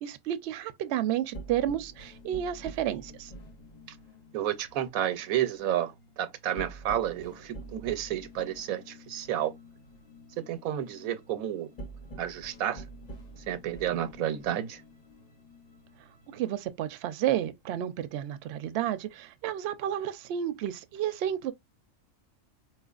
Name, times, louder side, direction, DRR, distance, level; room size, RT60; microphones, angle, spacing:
voice 1, 0.0-3.3 16.3-21.5, right 11 dB, 65° right, 0.7 m, -31 dB
sound 1, 1.0-16.7, right 1 dB, 40° left, 0.7 m, -48 dB
voice 2, 4.3-9.5 10.4-11.7 12.2-12.8 13.5-14.8, right 11 dB, 90° right, 1.1 m, -31 dB
4.5 x 2.4 x 2.3 m
omnidirectional pair, 1.4 m